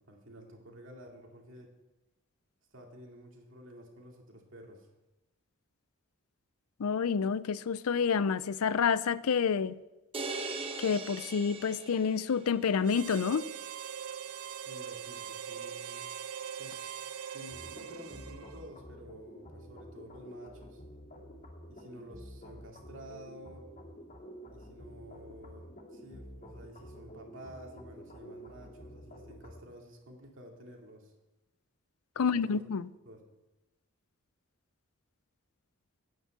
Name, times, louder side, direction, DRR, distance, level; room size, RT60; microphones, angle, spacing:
voice 1, 0.0-1.7 2.7-4.9 14.5-16.1 16.6-16.8 17.3-20.8 21.7-23.7 24.5-31.1 32.1-32.6 33.0-33.2, equal, 60° right, 2.5 m, -51 dB
voice 2, 6.8-9.8 10.8-13.4 32.2-32.9, left 6 dB, 80° left, 0.5 m, -28 dB
sound 1, 10.1-12.5, right 3 dB, 25° right, 1.0 m, -39 dB
Harmonica, 12.8-18.8, right 8 dB, 80° right, 0.6 m, -42 dB
sound 2, 17.5-29.6, equal, 35° left, 2.2 m, -49 dB
9.7 x 9.1 x 7.4 m
head